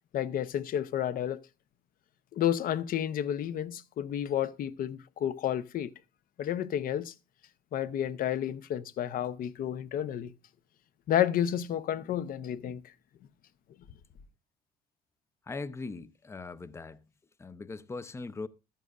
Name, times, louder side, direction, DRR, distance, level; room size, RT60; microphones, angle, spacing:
voice 1, 0.1-1.4 2.3-5.9 6.4-7.1 7.7-10.3 11.1-12.8, left 10 dB, 55° left, 0.6 m, -31 dB
voice 2, 15.5-17.0 17.4-18.5, left 3 dB, 15° left, 0.5 m, -40 dB
14.5 x 12.5 x 2.4 m
cardioid pair, 110°, 17 cm